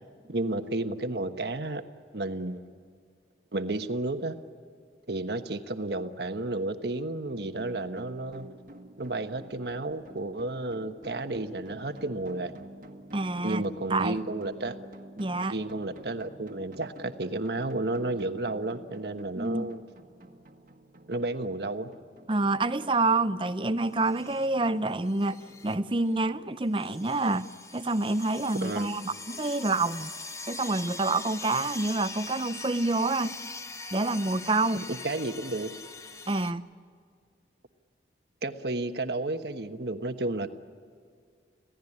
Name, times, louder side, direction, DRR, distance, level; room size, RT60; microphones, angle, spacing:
voice 1, 0.3-1.8 2.1-2.7 3.5-4.4 5.1-8.5 9.0-12.5 13.4-14.8 15.4-19.8 21.1-21.9 28.6-28.9 34.9-35.7 38.4-40.5, right 2 dB, 70° right, 8 dB, 1.2 m, -32 dB
sound 1, 7.3-26.6, right 1 dB, 50° right, 1.5 m, -50 dB
voice 2, 13.1-13.6 13.9-14.2 15.2-15.6 19.3-19.7 22.3-30.1 30.5-33.4 33.9-34.8 36.3-36.6, right 2 dB, 30° right, 13 dB, 0.6 m, -27 dB
sound 2, 24.0-24.5 25.0-25.8 26.1-26.3 26.8-36.5, left 3 dB, 15° left, 0.8 m, -42 dB
27.5 x 17.0 x 10.0 m, 2.1 s
head